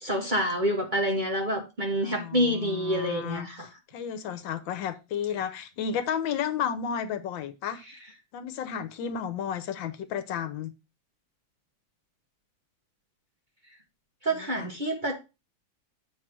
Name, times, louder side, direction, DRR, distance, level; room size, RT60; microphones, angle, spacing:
voice 1, 0.0-3.7 14.2-15.2, equal, 30° right, 1.2 m, -27 dB
voice 2, 2.0-7.8 8.3-10.7 14.3-14.7, left 8 dB, 75° left, 1.5 m, -33 dB
8.0 x 3.2 x 6.0 m
omnidirectional pair, 2.1 m